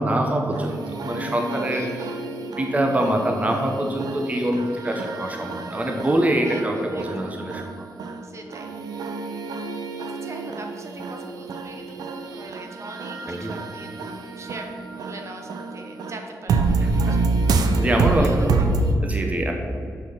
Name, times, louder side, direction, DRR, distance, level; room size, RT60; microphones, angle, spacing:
voice 1, 0.0-1.9 2.6-7.6 13.3-13.5 16.8-17.2 17.5-18.7 19.0-19.5, right 1 dB, 20° right, 2 dB, 1.0 m, -24 dB
sound 1, 0.5-18.9, right 3 dB, 85° right, 0.7 m, -28 dB
voice 2, 1.7-2.2 6.4-7.4 8.2-8.7 10.1-14.7 15.0-17.2 17.9-18.5 18.8-18.9, right 2 dB, 45° right, 3 dB, 1.1 m, -41 dB
6.7 x 6.2 x 5.6 m, 2.4 s
cardioid pair, 75°, 7 cm